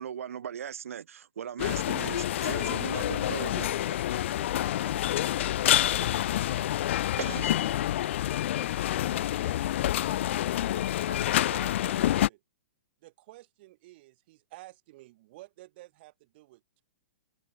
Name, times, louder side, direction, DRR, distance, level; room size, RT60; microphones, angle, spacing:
voice 1, 0.0-3.7 7.2-7.6, right 8 dB, 80° right, 0.6 m, -38 dB
sound 1, 1.6-12.3, left 13 dB, 60° left, 0.7 m, -28 dB
voice 2, 2.6-5.1 5.3-6.5 11.1-12.4 13.0-16.8, right 19 dB, 45° right, 3.2 m, -51 dB
voice 3, 7.4-11.3, left 15 dB, 25° left, 3.0 m, -47 dB
hypercardioid pair, 135°, 8 cm